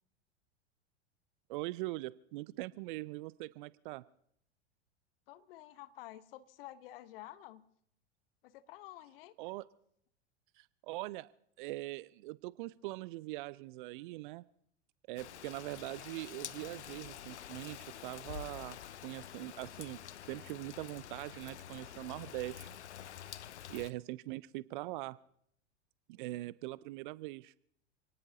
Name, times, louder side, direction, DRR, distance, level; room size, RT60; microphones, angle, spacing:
voice 1, 1.5-4.0 9.4-9.6 10.6-11.3 11.6-14.4 15.1-20.0 20.3-22.7 23.7-25.2 26.1-27.5, right 19 dB, 45° right, 20 dB, 0.5 m, -42 dB
voice 2, 5.3-7.6 8.4-9.3, left 14 dB, 55° left, 14 dB, 1.1 m, -50 dB
Rain, 15.2-23.9, left 10 dB, 75° left, 0.7 m, -48 dB
28.0 x 18.5 x 2.8 m, 0.70 s
figure-of-eight pair, 90°, 34 cm